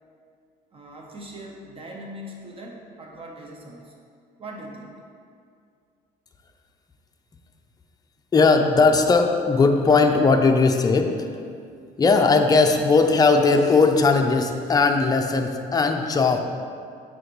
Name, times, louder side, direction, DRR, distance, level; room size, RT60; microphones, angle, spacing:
voice 1, 0.7-3.9 4.4-5.0, right 1 dB, 35° right, -1 dB, 0.8 m, -40 dB
voice 2, 8.3-11.1 12.0-16.4, left 4 dB, 25° left, 4 dB, 0.5 m, -18 dB
8.7 x 3.9 x 3.0 m, 2.3 s
cardioid pair, 110°, 17 cm